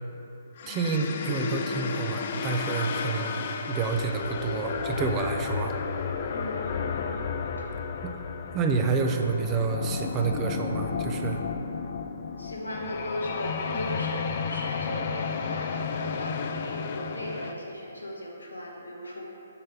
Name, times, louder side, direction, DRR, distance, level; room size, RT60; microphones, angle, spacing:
sound 1, 0.6-17.5, left 6 dB, 45° left, 0.4 m, -32 dB
voice 1, 0.7-5.8 8.0-8.1 8.5-11.4, right 5 dB, 20° right, 4 dB, 0.4 m, -29 dB
voice 2, 6.3-7.2 7.6-7.7 12.4-19.2, left 1 dB, 85° left, -2 dB, 1.2 m, -37 dB
6.9 x 3.3 x 5.4 m, 2.9 s
figure-of-eight pair, 130°, 0 cm